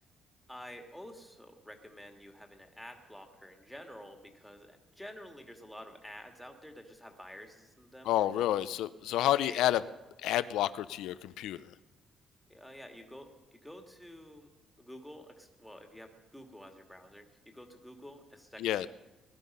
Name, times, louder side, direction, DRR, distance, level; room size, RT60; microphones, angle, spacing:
voice 1, 0.5-8.4 9.5-9.9 12.5-14.5 14.8-17.2 17.5-18.9, equal, ahead, 4 dB, 1.9 m, -50 dB
voice 2, 8.1-9.8 10.2-11.6 18.6-18.9, left 13 dB, 85° left, 14 dB, 0.4 m, -29 dB
19.0 x 12.0 x 5.4 m, 1.1 s
cardioid pair, 125°, 0 cm